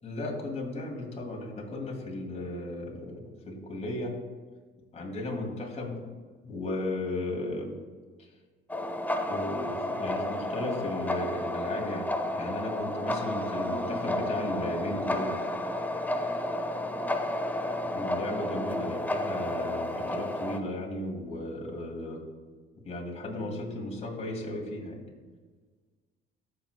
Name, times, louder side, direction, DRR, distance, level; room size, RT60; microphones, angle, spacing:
voice 1, 0.0-3.2 3.5-4.1 4.9-6.0 6.4-7.7 8.2-8.3 9.3-15.4 17.8-22.2 22.9-25.0, left 1 dB, 30° left, -1 dB, 2.4 m, -35 dB
sound 1, 8.7-20.6, left 1 dB, 10° left, 0.7 m, -31 dB
13.5 x 6.5 x 2.2 m, 1.4 s
supercardioid pair, 85°, 21 cm